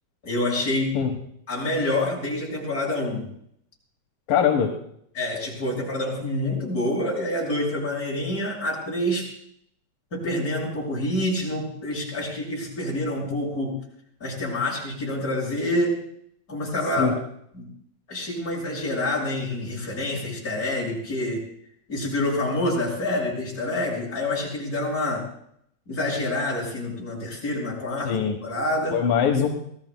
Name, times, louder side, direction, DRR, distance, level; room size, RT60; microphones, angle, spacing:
voice 1, 0.2-1.0 1.5-3.3 5.1-9.3 10.1-13.8 14.2-16.0 16.5-17.1 17.5-17.7 18.1-21.4 21.9-25.3 25.9-29.0, left 1 dB, 25° left, -4 dB, 6.8 m, -27 dB
voice 2, 4.3-4.7 17.0-17.1 28.0-28.4 28.9-29.5, left 7 dB, 80° left, 3 dB, 2.9 m, -21 dB
26.0 x 18.0 x 2.3 m, 0.70 s
omnidirectional pair, 3.9 m